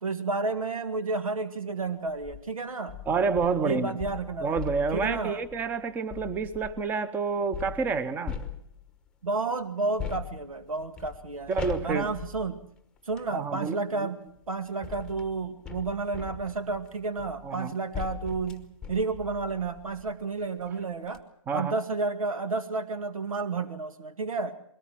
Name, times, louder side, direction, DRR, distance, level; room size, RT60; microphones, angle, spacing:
voice 1, 0.0-3.0 3.6-4.6 4.9-5.4 9.2-11.5 11.8-12.6 13.1-21.2 21.5-24.6, right 3 dB, 90° right, 9 dB, 2.1 m, -31 dB
sound 1, 2.1-2.4 2.9-6.9 7.5-9.1 10.0-13.3 14.3-20.2 20.6-20.7 21.0-21.2, left 7 dB, 5° left, 1.0 m, -41 dB
voice 2, 3.1-3.9 4.4-8.4 11.5-12.1 13.3-14.1 17.4-17.7 21.5-21.8, right 5 dB, 10° right, 14 dB, 0.8 m, -29 dB
22.0 x 18.5 x 7.5 m, 0.67 s
hypercardioid pair, 150°, 17 cm